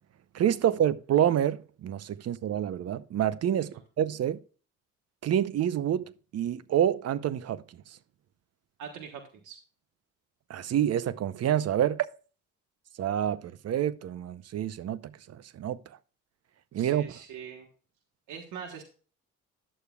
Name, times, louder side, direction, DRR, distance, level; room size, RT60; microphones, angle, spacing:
voice 1, 0.3-4.4 5.2-6.1 6.3-7.6 10.5-12.1 13.0-15.0 15.3-15.8 16.7-17.1, right 10 dB, 55° right, 0.6 m, -27 dB
voice 2, 8.8-9.6 16.7-17.7 18.3-18.8, right 7 dB, 85° right, 1.4 m, -42 dB
11.5 x 8.2 x 2.3 m
cardioid pair, 90°, 30 cm